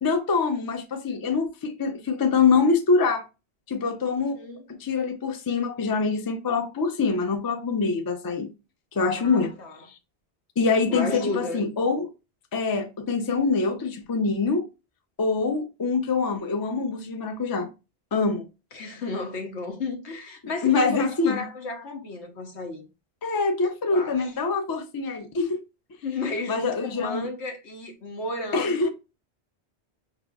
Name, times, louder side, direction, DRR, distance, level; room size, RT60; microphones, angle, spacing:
voice 1, 0.0-3.2 3.7-4.4 4.8-8.5 8.9-9.5 10.6-12.1 12.5-14.7 15.2-17.7 18.1-18.5 20.6-21.4 23.2-25.6 26.5-27.2 28.5-28.9, left 4 dB, 30° left, 0.4 m, -24 dB
voice 2, 4.2-4.6 9.2-9.8 10.9-11.7 18.7-22.8 23.9-24.3 26.0-28.9, left 2 dB, 90° left, 1.2 m, -33 dB
5.0 x 3.1 x 2.3 m
omnidirectional pair, 1.1 m